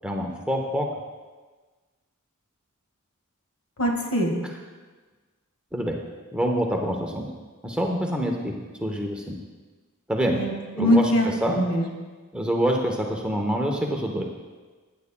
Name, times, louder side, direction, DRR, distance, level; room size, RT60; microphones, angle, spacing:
voice 1, 0.0-0.9 5.7-5.9 6.3-7.3 7.6-9.4 10.1-10.4 10.8-11.1 11.4-11.6 12.3-14.3, equal, 5° right, 0 dB, 0.8 m, -26 dB
voice 2, 3.8-4.3 10.3-11.9, equal, 65° left, 1 dB, 1.7 m, -23 dB
15.0 x 9.7 x 2.2 m, 1.3 s
head